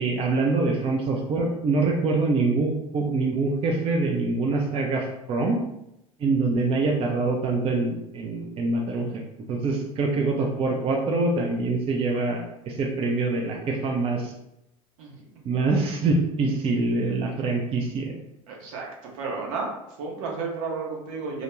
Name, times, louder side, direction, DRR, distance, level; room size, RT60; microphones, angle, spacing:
voice 1, 0.0-5.6 6.2-9.1 9.5-14.3 15.4-18.2, right 3 dB, 30° right, 0 dB, 0.5 m, -25 dB
voice 2, 18.5-18.9 19.2-19.7 20.0-21.4, right 4 dB, 65° right, -1 dB, 0.8 m, -32 dB
2.4 x 2.1 x 3.0 m, 0.83 s
hypercardioid pair, 75°, 18 cm